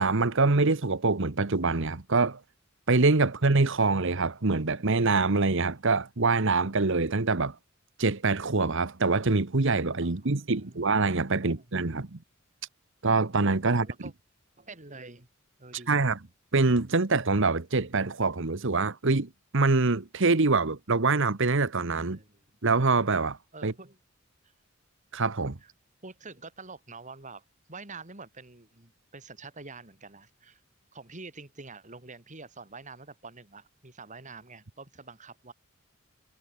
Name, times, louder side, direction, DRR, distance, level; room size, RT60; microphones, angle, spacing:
voice 1, 0.0-2.4 2.9-7.5 8.0-12.2 13.0-13.9 15.9-16.2 16.5-22.2 22.6-23.4 23.6-23.7 25.1-25.6, right 3 dB, 60° right, 1.2 m, -25 dB
voice 2, 10.0-10.8 11.4-11.7 13.7-14.1 14.6-15.3 15.6-16.1 22.1-22.4 23.5-24.0 24.4-24.5 25.6-25.7 26.0-30.6 30.9-35.5, right 3 dB, 35° right, 3.3 m, -47 dB
head